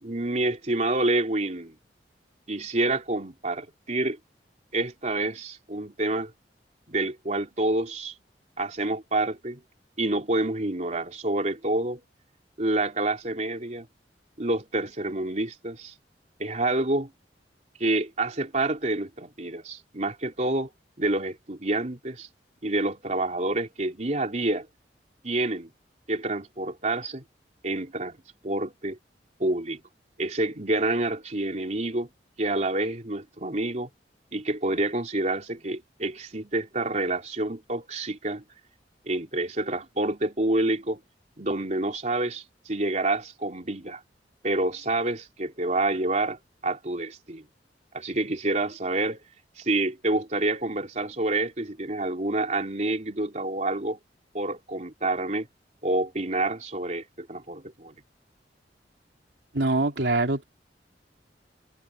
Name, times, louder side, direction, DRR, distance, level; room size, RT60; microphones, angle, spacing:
voice 1, 0.0-1.7 2.5-4.2 4.7-6.3 6.9-8.1 8.6-9.6 10.0-12.0 12.6-13.9 14.4-15.9 16.4-17.1 17.8-20.7 21.0-22.3 22.6-24.7 25.2-25.7 26.1-27.2 27.6-28.2 28.4-29.0 29.4-29.8 30.2-32.1 32.4-33.9 34.3-38.4 39.0-41.0 41.4-44.0 44.4-47.5 47.9-49.2 49.6-54.0 54.3-55.5 55.8-58.0, right 2 dB, 40° right, 3.4 m, -28 dB
voice 2, 59.5-60.4, right 2 dB, 80° right, 2.9 m, -24 dB
head